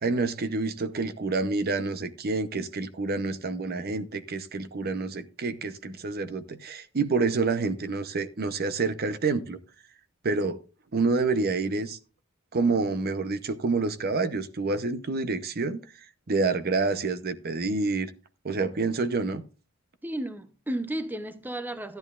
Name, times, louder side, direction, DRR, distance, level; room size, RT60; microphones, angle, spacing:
voice 1, 0.0-9.6 10.2-10.6 10.9-12.0 12.5-15.8 16.3-18.1 18.4-19.4, right 3 dB, 45° right, 0.7 m, -28 dB
voice 2, 20.0-22.0, right 1 dB, 10° right, 0.6 m, -33 dB
14.5 x 10.5 x 2.4 m
head